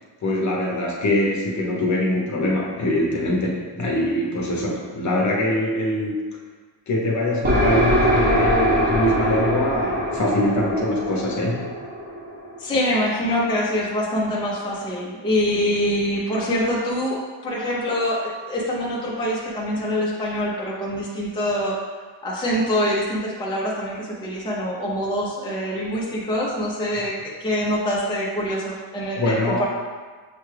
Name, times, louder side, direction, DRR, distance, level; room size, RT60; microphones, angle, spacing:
voice 1, 0.2-6.2 6.9-11.7 29.2-29.6, left 1 dB, 40° left, -2 dB, 0.8 m, -23 dB
sound 1, 7.4-13.0, equal, 20° right, 0.9 m, -23 dB
voice 2, 12.6-21.8 22.2-27.1 27.4-29.6, equal, 10° left, -5 dB, 0.5 m, -25 dB
6.7 x 2.3 x 3.2 m, 1.4 s
cardioid pair, 140°, 45 cm